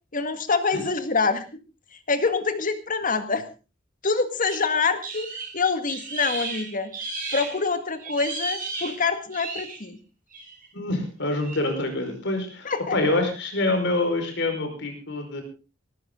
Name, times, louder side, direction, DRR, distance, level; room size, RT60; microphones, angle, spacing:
voice 1, 0.1-1.5 2.1-3.5 4.0-5.3 5.5-6.9 7.3-10.0 12.7-13.0, left 4 dB, 45° left, 9 dB, 1.9 m, -25 dB
sound 1, 4.5-7.7 8.0-9.9 10.3-10.6 11.4-11.6, right 3 dB, 45° right, 7.1 m, -34 dB
voice 2, 10.7-15.4, left 2 dB, 65° left, 5 dB, 5.2 m, -26 dB
18.5 x 14.0 x 3.9 m, 0.33 s
head